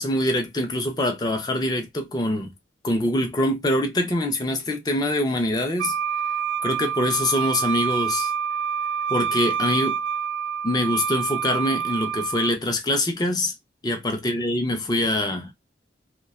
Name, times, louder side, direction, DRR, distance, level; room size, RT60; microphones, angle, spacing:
voice 1, 0.0-2.5 2.8-6.0 6.6-8.3 9.1-10.0 10.6-13.5 13.8-15.5, left 1 dB, 20° left, 0.4 m, -24 dB
Wind instrument woodwind instrument, 5.8-12.5, right 7 dB, 90° right, 0.3 m, -27 dB
2.7 x 2.1 x 2.2 m
head